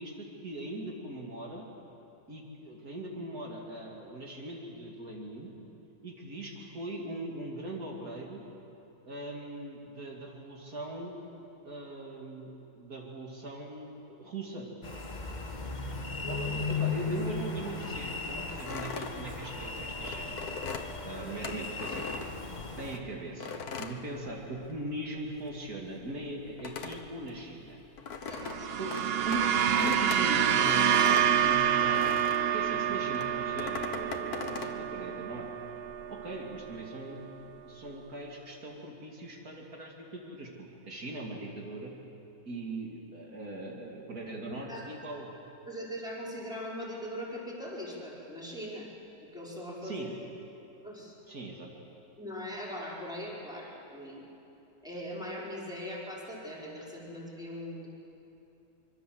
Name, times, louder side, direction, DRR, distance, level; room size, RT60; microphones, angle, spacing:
voice 1, 0.0-1.7 2.3-5.5 6.0-8.4 9.1-11.2 11.6-14.7 16.3-20.3 21.0-22.2 22.8-27.8 28.8-32.1 32.5-35.5 36.1-37.2 37.6-41.9 42.5-45.3 49.8-50.1 51.3-51.7, right 2 dB, 70° right, -1 dB, 2.9 m, -40 dB
sound 1, 14.8-23.0, left 3 dB, 30° left, 1.7 m, -36 dB
sound 2, 18.6-22.9 23.4-24.9 25.1-32.5 33.1-34.8, left 5 dB, 80° left, 1.8 m, -40 dB
voice 2, 28.2-28.7 44.5-44.8 45.7-48.9 49.3-50.1 50.8-51.2 52.2-54.3 54.8-57.9, equal, ahead, -6 dB, 5.2 m, -40 dB
sound 3, 28.3-36.8, right 9 dB, 55° right, 0.7 m, -28 dB
25.0 x 24.0 x 7.9 m, 2.9 s
omnidirectional pair, 1.6 m